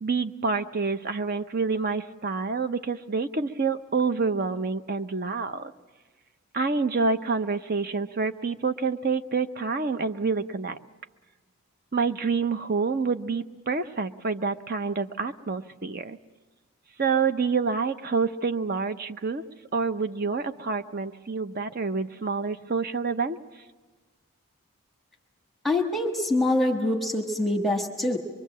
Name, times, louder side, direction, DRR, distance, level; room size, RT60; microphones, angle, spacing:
voice 1, 0.0-5.7 6.5-10.8 11.9-16.2 17.0-19.4 19.7-23.4, right 4 dB, 40° right, 10 dB, 0.7 m, -27 dB
voice 2, 25.6-28.2, left 1 dB, ahead, 2 dB, 1.3 m, -25 dB
24.0 x 23.0 x 7.4 m, 1.3 s
head